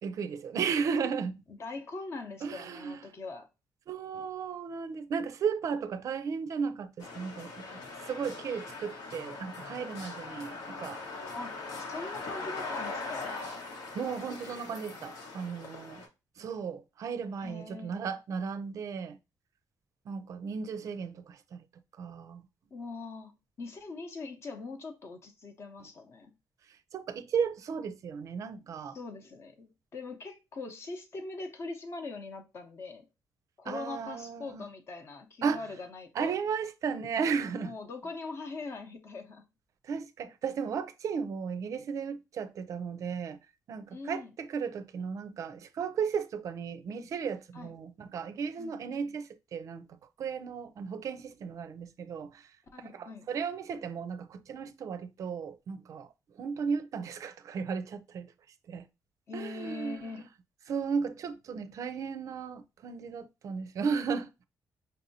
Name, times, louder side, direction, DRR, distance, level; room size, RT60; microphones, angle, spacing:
voice 1, 0.0-1.4 2.4-3.0 3.9-7.6 8.0-11.0 13.9-16.0 16.4-19.2 20.1-21.6 22.0-22.4 26.9-29.0 33.6-34.6 35.4-35.6 36.1-37.7 39.8-43.4 43.7-49.9 50.2-52.5 52.8-58.3 58.7-58.9 59.3-60.3 60.7-64.3, right 6 dB, 55° right, 0.4 m, -35 dB
voice 2, 1.6-3.5 11.3-11.6 11.9-13.4 17.4-18.1 22.7-26.3 28.9-33.1 33.6-36.4 37.6-39.5 43.9-44.3 47.5-47.7 48.6-49.1 52.7-53.3 59.3-60.2, left 3 dB, 40° left, 0.8 m, -42 dB
sound 1, 7.0-16.1, left 3 dB, 85° left, 1.2 m, -41 dB
5.4 x 2.7 x 2.7 m
cardioid pair, 160°, 7 cm